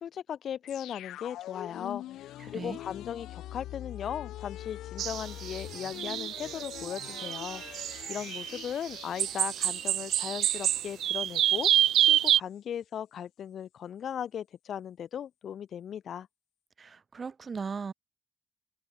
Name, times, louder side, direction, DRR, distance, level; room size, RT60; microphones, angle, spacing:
voice 1, 0.0-11.7 12.0-16.3, left 9 dB, 65° left, 0.7 m, -38 dB
sound 1, 0.7-11.5 11.8-11.9, left 14 dB, 90° left, 1.2 m, -44 dB
voice 2, 2.4-2.8 16.8-17.9, right 5 dB, 35° right, 1.0 m, -38 dB
sound 2, 5.0-12.4, right 11 dB, 75° right, 0.5 m, -28 dB
cardioid pair, 100°, 0 cm